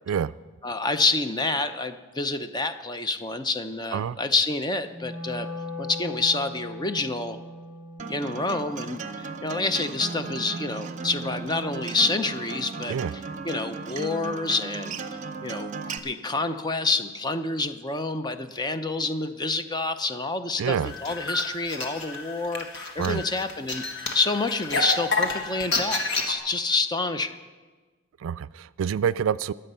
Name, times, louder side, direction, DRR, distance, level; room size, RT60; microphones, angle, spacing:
voice 1, 0.6-5.5 5.8-7.4 8.1-13.0 13.4-15.0 15.4-20.8 21.0-27.4, left 3 dB, 20° left, 9 dB, 0.6 m, -28 dB
Wind instrument woodwind instrument, 4.8-11.0, left 2 dB, 10° right, 2.9 m, -40 dB
Acoustic guitar, 8.0-16.0, right 4 dB, 40° right, 0.8 m, -36 dB
voice 2, 20.6-20.9 23.0-23.2 28.2-29.5, right 7 dB, 75° right, 17 dB, 0.3 m, -27 dB
sound 1, 20.8-26.3, left 3 dB, 60° left, 1.6 m, -29 dB
21.5 x 7.8 x 5.5 m, 1.3 s
head